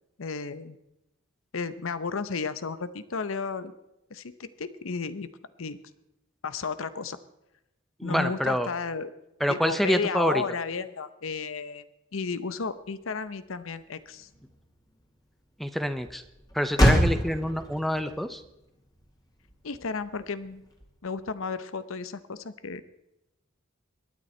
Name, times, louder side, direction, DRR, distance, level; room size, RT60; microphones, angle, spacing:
voice 1, 0.2-0.8 1.5-3.7 4.1-5.3 5.6-5.8 6.4-7.2 8.0-9.1 9.5-11.8 12.1-14.3 16.8-16.9 19.6-20.6 21.0-22.8, left 5 dB, 70° left, 14 dB, 0.7 m, -33 dB
voice 2, 8.0-8.7 9.4-10.4 15.6-16.2 16.5-18.4, equal, ahead, 10 dB, 0.6 m, -26 dB
Motor vehicle (road), 12.6-21.3, equal, 20° left, 2.4 m, -30 dB
22.5 x 9.4 x 4.3 m, 0.90 s
head